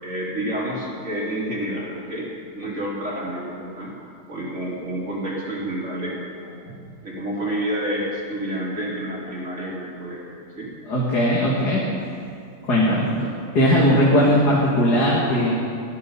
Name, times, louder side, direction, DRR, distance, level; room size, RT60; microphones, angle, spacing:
voice 1, 0.0-3.9 4.3-6.6 7.0-10.2 10.5-10.7, right 1 dB, 45° right, -5 dB, 3.4 m, -29 dB
voice 2, 10.9-11.9 12.6-13.0 13.5-15.5, equal, 75° left, -5 dB, 2.9 m, -18 dB
18.0 x 14.0 x 5.5 m, 2.4 s
omnidirectional pair, 1.8 m